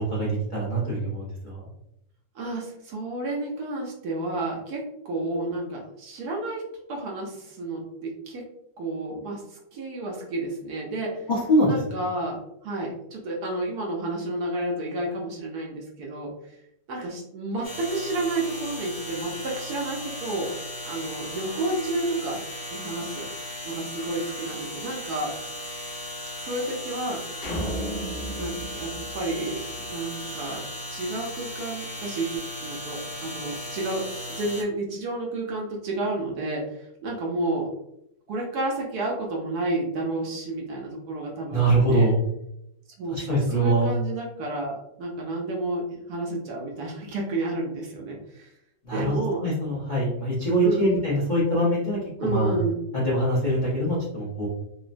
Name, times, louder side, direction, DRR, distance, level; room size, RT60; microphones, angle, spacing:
voice 1, 0.0-1.6 11.3-11.8 41.5-42.2 43.1-43.9 48.8-52.6 52.9-54.5, right 1 dB, 65° left, -7 dB, 0.4 m, -23 dB
voice 2, 2.3-6.6 6.9-8.4 8.8-11.2 11.7-16.6 16.9-20.5 20.8-22.4 22.7-23.3 23.6-25.3 26.4-27.8 28.3-30.6 30.9-37.7 38.3-42.1 43.0-48.5 48.9-49.4 50.6-51.1 52.2-52.8, right 2 dB, 70° right, -2 dB, 1.0 m, -31 dB
sound 1, 17.6-34.6, left 1 dB, 50° left, 0.8 m, -37 dB
sound 2, 27.4-30.0, right 1 dB, 90° left, 1.6 m, -34 dB
3.7 x 2.0 x 2.4 m, 0.80 s
omnidirectional pair, 2.0 m